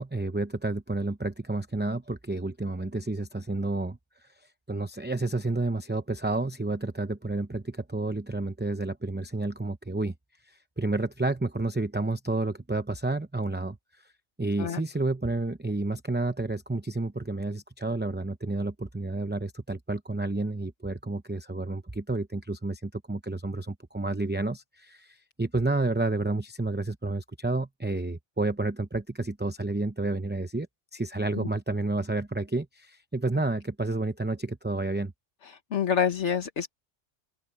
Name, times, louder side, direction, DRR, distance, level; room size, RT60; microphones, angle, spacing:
voice 1, 0.0-4.0 4.7-10.1 10.5-13.8 14.4-30.7 30.9-35.1, right 2 dB, 10° right, 0.6 m, -30 dB
voice 2, 35.4-36.7, left 8 dB, 75° left, 1.5 m, -27 dB
open air
omnidirectional pair, 1.2 m